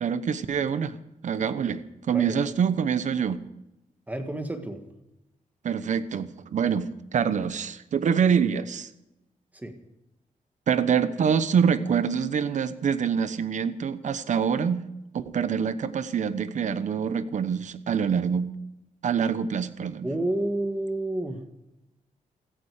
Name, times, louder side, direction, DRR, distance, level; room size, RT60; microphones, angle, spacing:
voice 1, 0.0-1.0 1.2-1.8 2.1-3.4 5.6-8.9 10.7-14.8 15.1-18.5 19.0-20.1, right 7 dB, 60° right, 13 dB, 1.0 m, -25 dB
voice 2, 2.1-2.5 4.1-4.8 9.5-9.8 20.0-21.5, right 1 dB, 10° right, 6 dB, 1.6 m, -30 dB
16.5 x 14.5 x 5.0 m, 0.90 s
wide cardioid pair, 130°, 14 cm